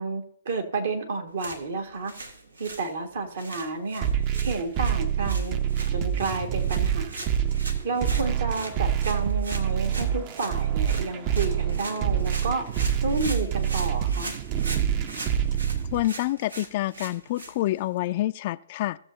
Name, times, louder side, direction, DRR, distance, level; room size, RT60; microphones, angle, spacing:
voice 1, 0.0-2.1 2.6-5.6 5.9-7.1 7.8-12.7 13.0-14.3, right 3 dB, 65° right, 4 dB, 1.9 m, -31 dB
sound 1, 1.3-18.1, right 2 dB, 85° right, 1.3 m, -41 dB
sound 2, 4.0-16.0, right 9 dB, 35° right, 0.7 m, -26 dB
voice 2, 15.9-19.0, left 15 dB, 45° left, 15 dB, 0.3 m, -27 dB
17.0 x 7.0 x 2.8 m, 0.64 s
figure-of-eight pair, 125°, 0 cm